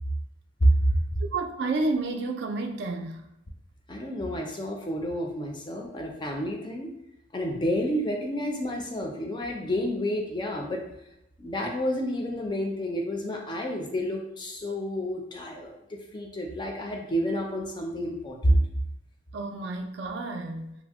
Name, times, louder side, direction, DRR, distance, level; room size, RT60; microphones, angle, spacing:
voice 1, 1.3-3.2 19.3-20.8, right 3 dB, 65° right, 5 dB, 0.3 m, -30 dB
voice 2, 3.9-6.9 7.3-10.8 11.4-18.6, equal, 25° left, 1 dB, 0.4 m, -29 dB
2.6 x 2.0 x 3.4 m, 0.84 s
head